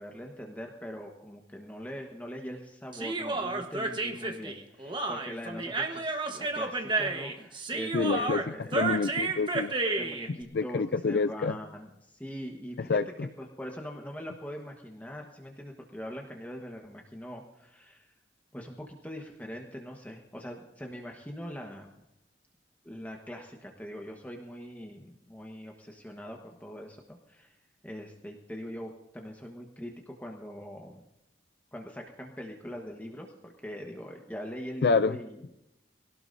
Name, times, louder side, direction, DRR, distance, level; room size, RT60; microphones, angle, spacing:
voice 1, 0.0-8.8 10.0-13.0 13.4-18.1 18.5-21.9 22.8-27.6 27.8-31.0 31.7-35.4, equal, 10° left, 1 dB, 1.2 m, -42 dB
Human voice, 2.9-10.3, right 3 dB, 25° right, 1.2 m, -31 dB
voice 2, 7.9-8.4 8.7-9.7 10.5-11.6 12.9-13.0 34.8-35.2, left 4 dB, 60° left, 12 dB, 0.4 m, -27 dB
22.5 x 17.5 x 2.7 m, 0.86 s
head